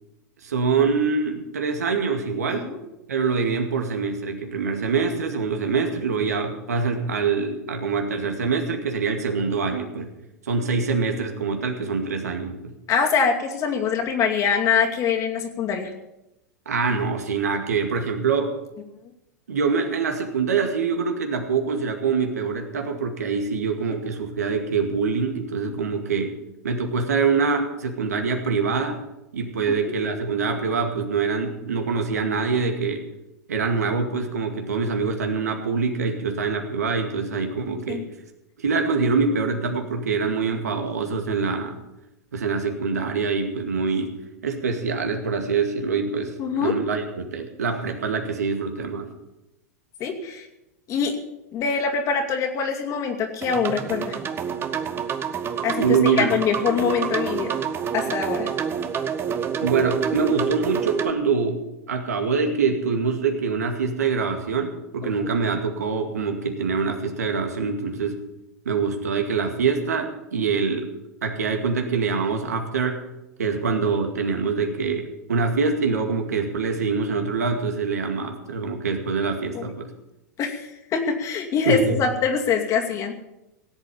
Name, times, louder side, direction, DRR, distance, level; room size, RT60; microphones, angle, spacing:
voice 1, 0.4-2.7 3.1-10.1 10.5-12.7 16.7-18.6 19.5-26.4 26.6-29.0 29.3-33.0 33.5-38.0 38.6-41.8 42.3-44.1 44.4-49.1 55.8-56.3 59.6-61.6 61.9-68.2 68.7-70.9 71.2-73.1 73.4-79.9 81.6-82.0, right 5 dB, 75° right, 4 dB, 2.2 m, -24 dB
voice 2, 12.9-15.9 37.9-38.0 46.4-46.7 50.0-50.5 50.9-51.2 51.5-54.2 55.6-57.5 57.9-58.5 79.5-79.7 80.4-83.1, left 6 dB, 40° left, 2 dB, 2.5 m, -24 dB
sound 1, 53.4-61.1, right 7 dB, 25° right, 1.1 m, -27 dB
17.5 x 8.2 x 7.1 m, 0.92 s
hypercardioid pair, 95°, 9 cm